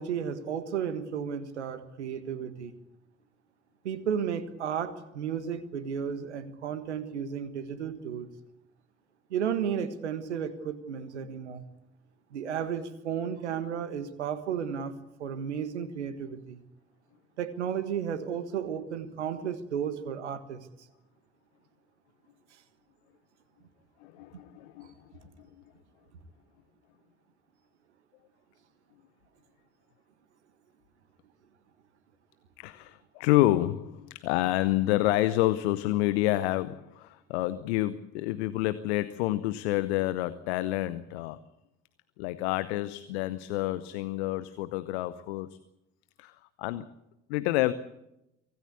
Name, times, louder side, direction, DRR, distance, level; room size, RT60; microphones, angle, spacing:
voice 1, 0.0-2.7 3.8-8.3 9.3-11.6 12.3-14.9 15.2-16.6 17.4-20.7, right 8 dB, 80° right, 12 dB, 1.6 m, -33 dB
voice 2, 24.0-24.9 32.6-41.4 42.2-45.6 46.2-46.9 47.3-47.7, left 16 dB, 70° left, 15 dB, 0.9 m, -28 dB
24.5 x 17.5 x 8.3 m, 0.87 s
figure-of-eight pair, 50°, 34 cm